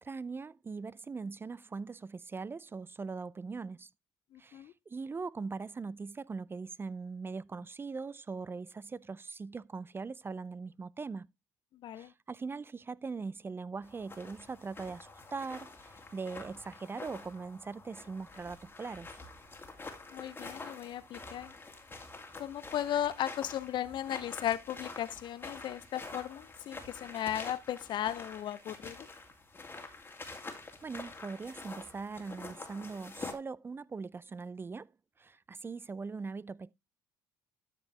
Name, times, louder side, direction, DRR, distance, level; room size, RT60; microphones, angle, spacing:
voice 1, 0.0-3.9 4.4-11.3 11.9-19.2 30.2-30.4 30.8-34.9 35.2-36.7, right 4 dB, 25° right, 0.4 m, -41 dB
voice 2, 4.3-4.7 11.7-12.1 20.1-21.5 22.4-29.1, left 11 dB, 55° left, 0.6 m, -36 dB
sound 1, 13.8-33.3, left 3 dB, 25° left, 2.5 m, -47 dB
12.5 x 5.2 x 3.2 m
hypercardioid pair, 60°, 9 cm